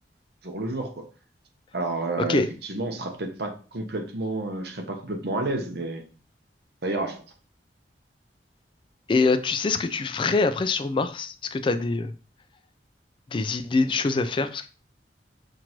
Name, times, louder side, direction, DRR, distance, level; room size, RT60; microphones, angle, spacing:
voice 1, 0.4-1.1 1.7-6.0 6.8-7.2, right 2 dB, 60° right, 4 dB, 0.8 m, -30 dB
voice 2, 9.1-12.1 13.3-14.7, left 3 dB, 30° left, 9 dB, 0.3 m, -24 dB
5.9 x 2.5 x 3.0 m, 0.36 s
head